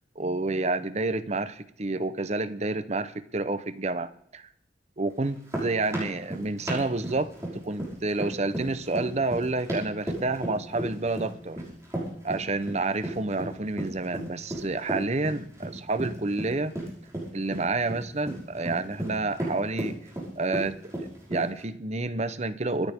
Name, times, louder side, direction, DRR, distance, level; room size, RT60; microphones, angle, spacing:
voice 1, 0.2-4.5 5.0-11.6 12.2-16.7 17.3-20.0 20.4-22.9, right 2 dB, 35° right, 12 dB, 0.9 m, -29 dB
sound 1, 5.2-21.6, right 1 dB, 15° right, 5.8 m, -35 dB
25.5 x 10.5 x 3.7 m, 0.71 s
head